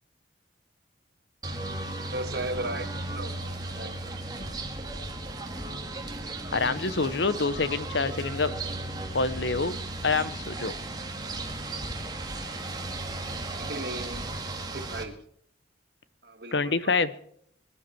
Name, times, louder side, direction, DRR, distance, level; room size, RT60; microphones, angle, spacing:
sound 1, 1.4-15.0, right 2 dB, 20° right, 1.8 m, -35 dB
voice 1, 2.1-4.5 13.5-14.3 14.6-15.2 16.2-17.2, right 2 dB, 55° right, 7 dB, 1.8 m, -37 dB
voice 2, 6.5-8.5 9.1-9.8 10.0-10.7 16.5-17.1, left 4 dB, 70° left, 15 dB, 0.9 m, -26 dB
21.5 x 12.0 x 4.5 m, 0.64 s
head